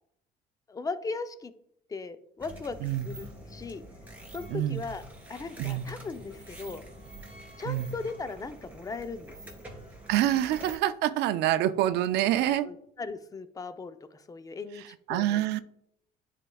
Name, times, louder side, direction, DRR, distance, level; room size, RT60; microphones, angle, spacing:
voice 1, 0.7-1.5 1.9-3.8 4.3-5.0 5.3-6.8 7.6-9.6 12.6-15.5, left 4 dB, 20° left, 0.5 m, -38 dB
sound 1, 2.4-10.8, right 1 dB, 10° right, 2.6 m, -47 dB
voice 2, 4.5-4.8 5.6-5.9 7.7-7.9 10.1-12.7 15.1-15.6, right 13 dB, 85° right, 0.4 m, -26 dB
10.0 x 4.6 x 2.3 m
cardioid pair, 110°, 17 cm